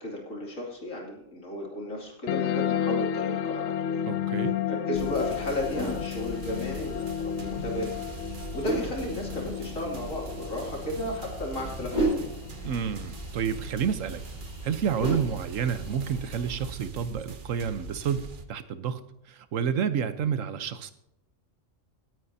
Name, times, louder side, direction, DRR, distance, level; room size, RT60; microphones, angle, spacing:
voice 1, 0.0-4.0 4.7-7.9 8.3-12.3 20.2-20.3, left 1 dB, 90° left, -1 dB, 3.2 m, -34 dB
sound 1, 2.3-13.3, left 10 dB, 70° left, 0.8 m, -32 dB
voice 2, 4.1-4.5 12.6-14.2 14.6-19.0 19.3-20.9, right 7 dB, 80° right, 12 dB, 1.2 m, -29 dB
sound 2, 4.9-18.4, right 3 dB, 45° right, 1.0 m, -41 dB
sound 3, 5.1-16.7, right 1 dB, 35° left, 4.9 m, -37 dB
18.0 x 9.4 x 2.7 m, 0.86 s
omnidirectional pair, 1.3 m